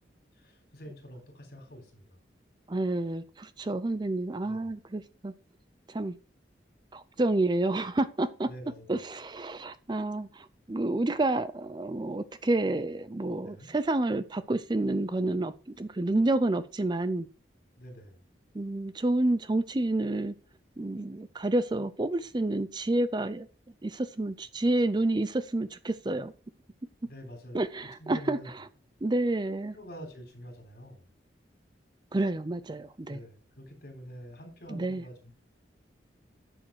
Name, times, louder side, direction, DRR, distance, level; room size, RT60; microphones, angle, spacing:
voice 1, 0.3-2.2 4.4-4.7 8.5-9.0 13.4-13.7 17.8-18.3 27.0-28.7 29.7-31.1 33.0-35.3, equal, 55° left, 3.7 m, -47 dB
voice 2, 2.7-5.3 5.9-6.2 6.9-8.5 8.9-17.3 18.5-20.3 20.8-23.5 23.8-26.3 27.5-28.4 29.0-29.8 32.1-33.2 34.7-35.0, right 2 dB, 25° right, 0.5 m, -29 dB
10.5 x 6.4 x 4.7 m
head